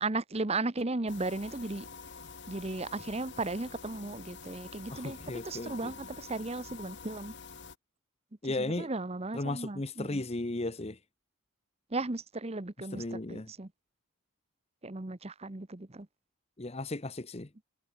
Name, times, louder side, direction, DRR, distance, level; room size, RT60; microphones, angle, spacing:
voice 1, 0.0-1.9 2.5-5.2 5.4-7.3 8.4-10.2 11.9-13.7 14.8-16.1, right 2 dB, 30° right, 0.9 m, -35 dB
sound 1, 1.1-7.8, left 5 dB, 55° left, 1.6 m, -47 dB
voice 2, 4.9-5.9 8.4-8.9 9.3-11.0 12.8-13.5 16.6-17.5, left 2 dB, 30° left, 0.9 m, -35 dB
head